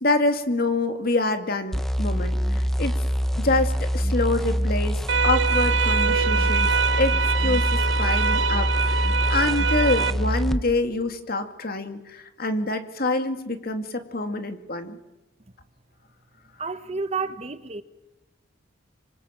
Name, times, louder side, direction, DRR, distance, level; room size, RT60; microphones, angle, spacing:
voice 1, 0.0-3.0 3.4-6.7 7.0-15.0, left 2 dB, 50° left, 2.3 m, -26 dB
sound 1, 1.7-10.6, equal, ahead, 0.9 m, -25 dB
sound 2, 5.1-10.1, right 6 dB, 65° right, 1.1 m, -24 dB
voice 2, 16.6-17.8, right 4 dB, 35° right, 1.1 m, -30 dB
26.5 x 25.5 x 7.5 m
head